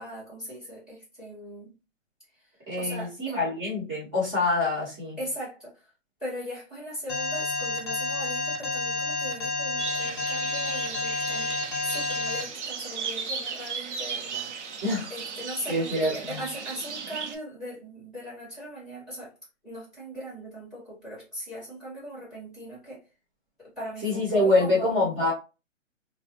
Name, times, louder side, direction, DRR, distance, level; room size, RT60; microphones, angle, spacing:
voice 1, 0.0-1.7 2.3-2.5 2.8-3.4 5.2-5.9 6.2-11.5 11.8-14.8 15.1-19.3 19.6-23.1 23.6-24.9, equal, ahead, 1.5 m, -39 dB
voice 2, 2.7-5.2 14.8-15.1 15.7-16.4 24.0-25.3, left 2 dB, 25° right, 1.7 m, -25 dB
Alarm, 7.1-12.4, left 3 dB, 20° left, 0.6 m, -29 dB
sound 1, 9.8-17.3, right 6 dB, 60° right, 0.8 m, -36 dB
4.1 x 2.3 x 2.9 m
hypercardioid pair, 160°, 39 cm